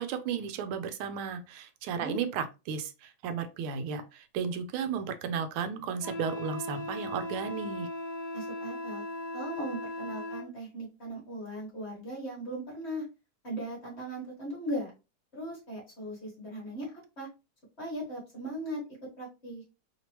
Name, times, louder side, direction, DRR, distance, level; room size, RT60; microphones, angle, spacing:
voice 1, 0.0-7.9, right 6 dB, 85° right, 9 dB, 1.5 m, -34 dB
Wind instrument woodwind instrument, 6.0-10.5, left 1 dB, 30° right, 0.5 m, -38 dB
voice 2, 8.3-9.0 9.3-13.0 13.4-14.9 15.3-16.9 17.2-17.3 17.8-18.8 19.2-19.6, right 1 dB, 35° left, -3 dB, 1.3 m, -38 dB
3.6 x 2.9 x 2.9 m, 0.28 s
omnidirectional pair, 2.3 m